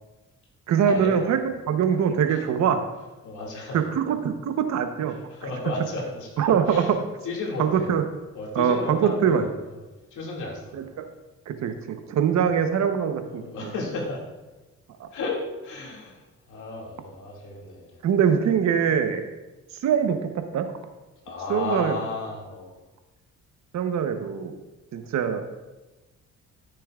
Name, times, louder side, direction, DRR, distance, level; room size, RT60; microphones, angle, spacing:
voice 1, 0.7-2.8 3.7-5.2 5.4-5.7 6.4-7.0 7.6-8.0 8.5-9.5 10.7-10.9 11.5-13.9 15.0-15.1 18.0-19.2 19.8-20.7 21.5-22.0 23.7-24.6 24.9-25.4, right 7 dB, 65° right, 7 dB, 0.9 m, -23 dB
voice 2, 3.2-3.9 5.1-6.4 6.7-6.9 7.2-7.9 8.3-9.7 10.1-10.8 13.2-14.2 15.1-18.0 18.9-19.0 21.3-22.7, left 3 dB, 80° left, -2 dB, 2.3 m, -33 dB
13.5 x 6.9 x 2.4 m, 1.1 s
cardioid pair, 90°, 30 cm